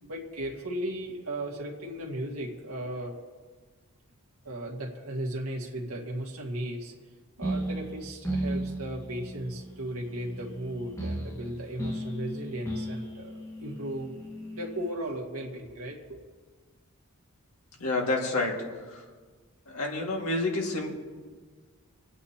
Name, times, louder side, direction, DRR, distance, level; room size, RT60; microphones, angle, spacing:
voice 1, 0.0-3.2 4.4-6.9 7.4-14.2 14.5-16.2, right 1 dB, 80° right, -1 dB, 1.8 m, -36 dB
sound 1, 7.4-14.9, right 1 dB, 15° left, 1.5 m, -36 dB
voice 2, 17.8-18.6 19.7-20.9, left 2 dB, 80° left, 0 dB, 2.0 m, -28 dB
26.0 x 8.8 x 2.9 m, 1.5 s
head